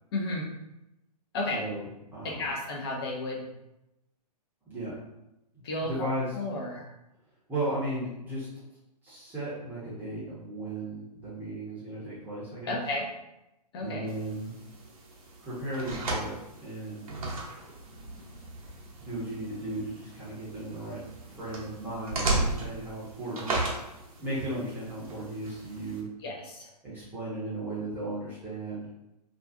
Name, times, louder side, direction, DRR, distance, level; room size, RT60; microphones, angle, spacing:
voice 1, 0.1-0.5 1.3-1.6 2.2-3.5 5.6-5.9 6.3-6.9 12.7-13.1 13.7-14.1 26.2-26.7, left 2 dB, 35° left, 0 dB, 0.6 m, -32 dB
voice 2, 1.5-2.5 4.7-5.0 5.8-6.3 7.5-8.5 9.0-12.8 13.8-14.5 15.4-16.3 16.6-17.1 19.0-21.0 21.3-23.6 24.2-26.1 26.8-28.9, right 1 dB, 10° right, -10 dB, 0.7 m, -35 dB
sound 1, 14.1-26.0, right 2 dB, 55° right, 0.7 m, -36 dB
2.5 x 2.3 x 2.5 m, 0.89 s
figure-of-eight pair, 120°, 21 cm